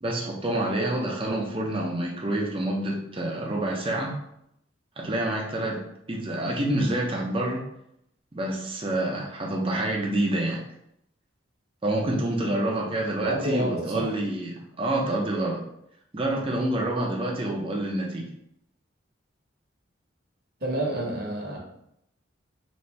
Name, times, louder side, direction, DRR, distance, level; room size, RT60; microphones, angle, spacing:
voice 1, 0.0-4.2 5.0-5.8 6.1-7.6 8.3-10.6 11.8-15.6 16.1-18.3, right 1 dB, 25° right, -1 dB, 0.7 m, -27 dB
voice 2, 13.2-14.1 20.6-21.6, right 1 dB, 50° right, -3 dB, 1.2 m, -29 dB
4.1 x 2.7 x 3.3 m, 0.77 s
head